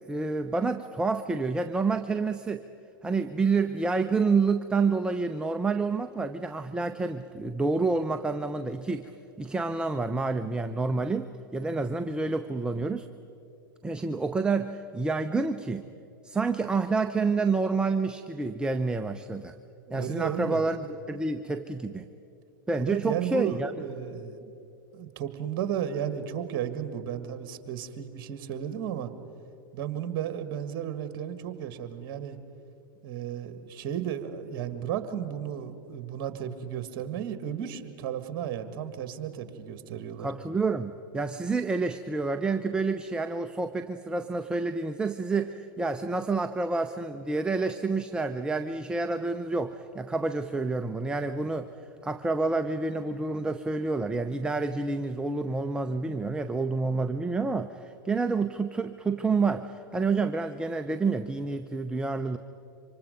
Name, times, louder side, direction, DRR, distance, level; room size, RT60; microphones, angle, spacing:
voice 1, 0.1-2.6 3.0-9.1 9.4-13.1 13.8-15.8 16.2-19.5 19.9-22.1 22.7-23.7 40.2-51.7 52.0-62.4, right 3 dB, 5° right, 9 dB, 0.7 m, -28 dB
voice 2, 19.9-20.7 22.8-24.5 24.9-29.1 29.7-32.4 33.0-40.3, right 9 dB, 45° right, 10 dB, 1.8 m, -34 dB
27.0 x 25.5 x 5.3 m, 2.7 s
hypercardioid pair, 100°, 12 cm